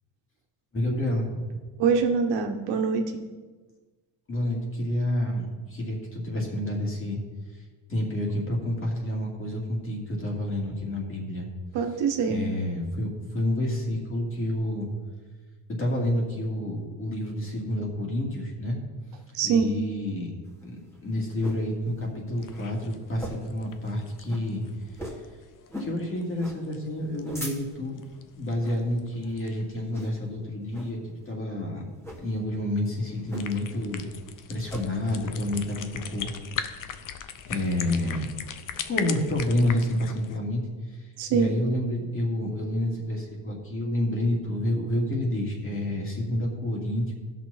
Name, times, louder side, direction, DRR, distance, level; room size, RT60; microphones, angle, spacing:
voice 1, 0.7-1.4 4.3-5.5 5.7-7.2 7.9-11.5 12.3-14.9 15.8-18.8 19.4-20.3 20.6-24.6 25.8-28.0 28.4-31.8 32.2-34.0 34.5-36.3 37.5-38.2 38.8-40.6 41.3-47.1, left 1 dB, 30° left, -1 dB, 2.6 m, -29 dB
voice 2, 1.8-3.2 11.7-12.5 19.3-19.7 41.2-41.5, right 5 dB, 80° right, 4 dB, 1.3 m, -24 dB
sound 1, 20.5-21.7 22.1-22.2 22.4-22.7 23.1-23.6 23.9-24.0 24.3-24.5 25.0-25.3 25.7-26.0 26.4-26.6 27.0-27.9 28.5-28.8 29.2-29.5 29.9-30.3 30.7-31.0 31.9-32.2 33.3-33.8 34.1-34.9, equal, 5° left, 2.0 m, -39 dB
sound 2, 22.3-29.7 33.1-40.4, left 8 dB, 50° left, 0.8 m, -40 dB
16.0 x 6.3 x 4.2 m, 1.4 s
cardioid pair, 120°, 42 cm